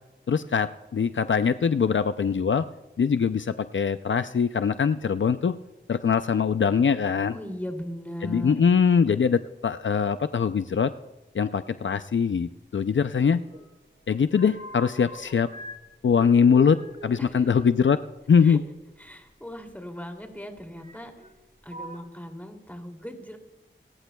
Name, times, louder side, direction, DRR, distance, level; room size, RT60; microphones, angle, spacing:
voice 1, 0.3-2.6 3.0-5.6 5.9-7.4 8.2-10.9 11.3-13.4 14.1-15.5 16.0-16.8 17.0-18.0 18.3-18.6, left 6 dB, 70° left, 11 dB, 0.4 m, -22 dB
voice 2, 7.3-8.6 17.2-17.6 18.4-18.6 19.0-21.1 21.6-23.4, equal, 10° left, 3 dB, 2.7 m, -38 dB
sound 1, 12.8-13.7 14.0-15.8 16.1-18.6 19.7-19.8 20.7-21.3 21.6-22.0, right 1 dB, 40° right, 2.0 m, -43 dB
27.5 x 14.5 x 2.3 m, 1.1 s
wide cardioid pair, 45°, 20 cm